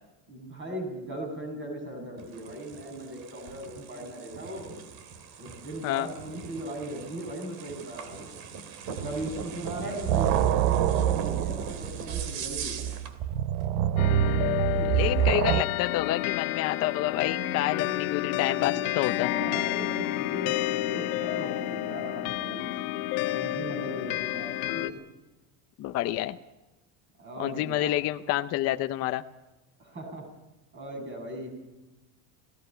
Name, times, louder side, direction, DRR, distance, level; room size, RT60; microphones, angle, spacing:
voice 1, 0.3-4.7 5.4-8.3 8.9-12.9 14.6-15.1 18.3-18.9 19.3-22.7 23.3-25.0 27.2-27.9 29.8-30.3 30.7-31.5, right 1 dB, 25° right, 4 dB, 7.3 m, -38 dB
sound 1, 2.2-13.2, right 6 dB, 50° right, 3.0 m, -40 dB
sound 2, 9.0-9.4 9.7-15.6, right 10 dB, 70° right, 1.1 m, -26 dB
sound 3, 14.0-24.9, left 15 dB, 65° left, 1.4 m, -30 dB
voice 2, 15.0-19.3 25.8-26.4 27.4-29.2, left 14 dB, 35° left, 8 dB, 0.6 m, -28 dB
28.5 x 17.5 x 5.7 m, 1.0 s
cardioid pair, 165°, 45 cm